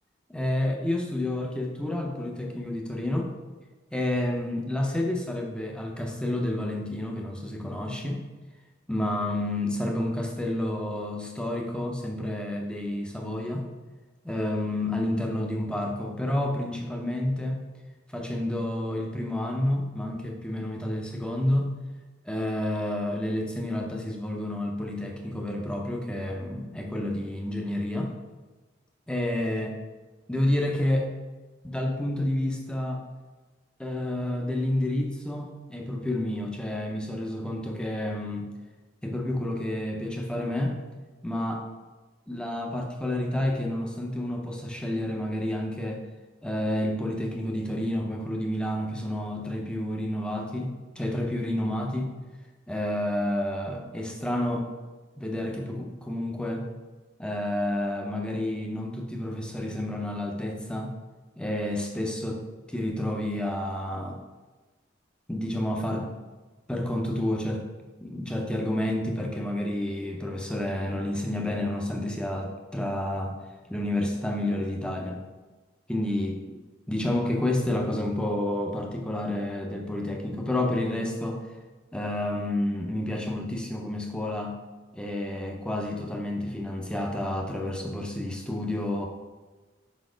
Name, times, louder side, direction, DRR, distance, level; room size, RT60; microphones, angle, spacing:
voice 1, 0.3-3.3 3.9-8.2 8.9-13.7 14.2-17.6 18.1-21.7 22.3-28.1 29.1-29.8 30.3-31.1 31.6-33.0 33.8-38.5 39.0-40.8 41.2-41.7 42.3-46.0 46.4-52.1 52.7-54.7 55.2-56.7 57.2-60.9 61.4-62.4 62.7-64.2 65.3-66.1 66.7-67.7 68.0-73.4 73.7-75.2 75.9-76.6 76.9-81.4 81.9-84.6 84.9-89.1, left 1 dB, 5° left, 1 dB, 0.6 m, -29 dB
5.3 x 4.2 x 5.0 m, 1.2 s
head